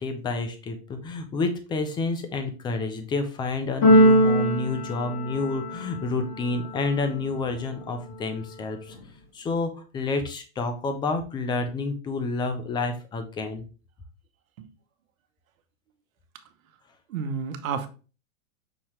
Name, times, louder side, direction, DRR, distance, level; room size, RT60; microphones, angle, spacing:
voice 1, 0.0-9.0 9.3-13.6, left 3 dB, 10° left, 7 dB, 0.4 m, -29 dB
Keyboard (musical), 3.8-5.9, equal, 50° left, 1.7 m, -20 dB
voice 2, 17.1-17.9, right 6 dB, 75° right, 8 dB, 0.9 m, -30 dB
5.7 x 2.8 x 3.1 m, 0.35 s
hypercardioid pair, 125°, 41 cm